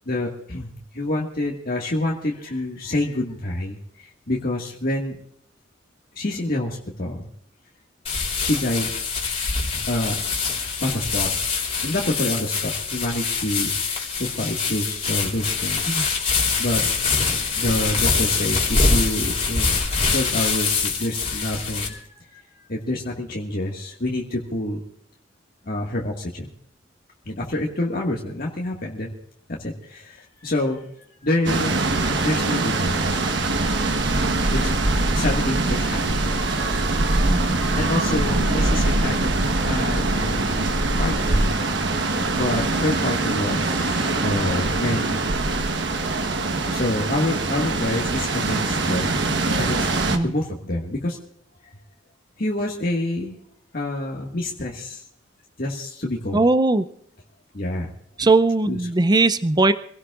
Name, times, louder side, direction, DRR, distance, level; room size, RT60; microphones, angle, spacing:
voice 1, 0.1-5.2 6.1-7.3 8.4-8.9 9.8-10.2 10.8-11.3 11.8-15.9 16.6-16.8 17.6-19.9 20.1-22.4 22.7-24.8 25.6-26.5 27.3-29.1 29.5-30.9 31.2-31.7 32.2-33.2 34.5-34.7 35.1-36.2 37.8-40.6 41.0-41.6 42.3-45.3 46.7-49.2 49.6-49.9 50.2-51.2 52.4-53.3 53.7-55.0 55.6-56.4 57.5-57.9 58.2-58.3 58.7-58.8, left 1 dB, 50° left, -2 dB, 1.8 m, -27 dB
sound 1, 8.1-21.9, left 4 dB, 30° left, 3.3 m, -24 dB
sound 2, 31.4-50.2, right 2 dB, 65° right, 1.3 m, -23 dB
voice 2, 56.3-56.9 58.2-59.7, right 2 dB, 20° right, 11 dB, 0.5 m, -19 dB
26.5 x 17.5 x 2.5 m, 0.66 s
head